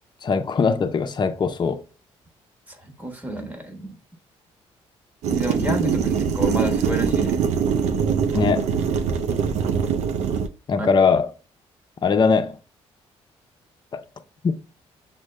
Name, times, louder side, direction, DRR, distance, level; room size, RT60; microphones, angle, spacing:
voice 1, 0.2-1.8 8.3-8.7 10.7-11.3 12.0-12.6 13.9-14.0 14.4-14.6, left 5 dB, 40° left, 0.6 m, -20 dB
voice 2, 2.7-4.0 5.3-7.4 8.3-8.5 10.8-10.9, right 1 dB, 15° right, 1.2 m, -29 dB
sound 1, 5.2-10.5, right 7 dB, 80° right, 0.5 m, -23 dB
6.1 x 2.2 x 3.2 m
cardioid pair, 75°, 11 cm